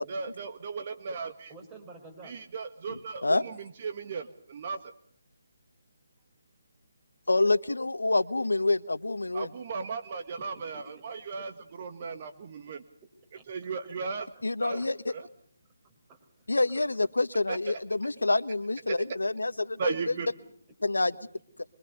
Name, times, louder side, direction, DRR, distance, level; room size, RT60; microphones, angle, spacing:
voice 1, 0.1-1.5 2.2-4.9 9.3-12.8 13.5-14.3 14.6-14.8 15.1-15.3 17.5-17.8 18.9-19.0 19.8-20.3, right 5 dB, 35° right, 8 dB, 1.6 m, -36 dB
voice 2, 1.5-2.4 10.7-11.1 13.3-13.7 14.3-14.4 14.8-14.9 15.8-16.5 17.0-17.1, right 3 dB, 20° right, 5 dB, 5.3 m, -51 dB
voice 3, 2.9-3.4 7.3-9.5 14.4-15.1 16.5-19.9 20.8-21.1, left 2 dB, 80° left, 14 dB, 1.2 m, -27 dB
25.5 x 23.0 x 6.8 m, 0.63 s
figure-of-eight pair, 150°, 0 cm